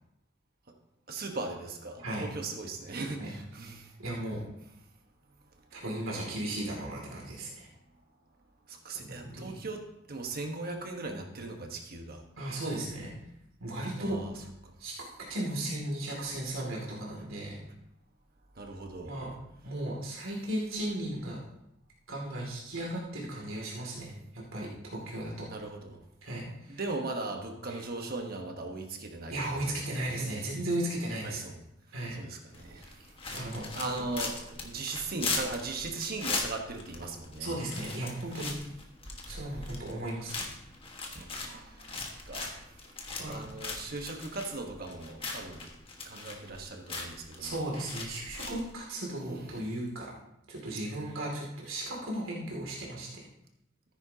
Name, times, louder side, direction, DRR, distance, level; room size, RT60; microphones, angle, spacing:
voice 1, 1.1-3.9 8.7-9.8 10.1-12.2 13.9-14.3 14.6-14.7 18.5-19.2 25.5-26.0 26.7-29.7 30.1-30.4 31.2-31.5 32.1-33.1 33.7-37.5 41.1-41.9 42.3-42.8 43.3-45.7 46.0-47.6, right 3 dB, 50° right, 3 dB, 1.2 m, -38 dB
voice 2, 4.0-4.4 5.7-7.7 9.0-9.5 12.4-13.1 13.6-14.2 14.8-17.6 19.0-19.3 19.6-21.4 22.1-25.5 26.2-26.8 27.7-27.8 29.3-31.4 31.9-32.2 33.3-34.0 37.4-38.5 39.3-40.5 43.2-43.4 47.4-50.1 50.5-53.3, right 1 dB, 80° right, -3 dB, 2.6 m, -36 dB
sound 1, 32.5-48.7, left 3 dB, 25° left, 1.5 m, -39 dB
14.0 x 9.8 x 2.8 m, 0.82 s
head